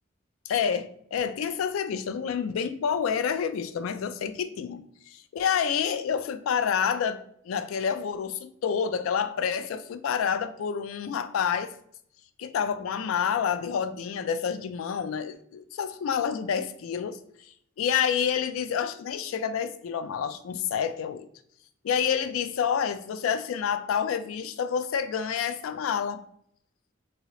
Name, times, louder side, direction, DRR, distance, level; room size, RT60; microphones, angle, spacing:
voice 1, 0.5-11.7 12.4-21.3 21.8-26.2, left 7 dB, 90° left, 0.3 m, -28 dB
2.7 x 2.7 x 3.1 m
head